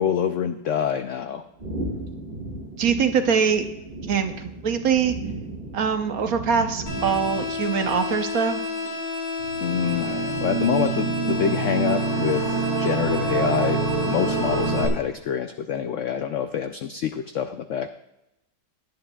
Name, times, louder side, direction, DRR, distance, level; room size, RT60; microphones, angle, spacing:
voice 1, 0.0-1.4 9.6-13.8 14.1-17.9, left 8 dB, 85° left, 9 dB, 0.6 m, -26 dB
sound 1, 1.6-8.4, right 2 dB, 30° right, 1.7 m, -36 dB
voice 2, 2.8-3.7 4.1-4.3 4.6-5.2 5.7-8.6, right 6 dB, 60° right, 7 dB, 1.2 m, -23 dB
sound 2, 6.9-14.9, left 4 dB, 50° left, 3.9 m, -30 dB
sound 3, 9.4-14.9, right 6 dB, 85° right, 1.7 m, -26 dB
18.5 x 10.5 x 2.3 m, 0.90 s
omnidirectional pair, 1.9 m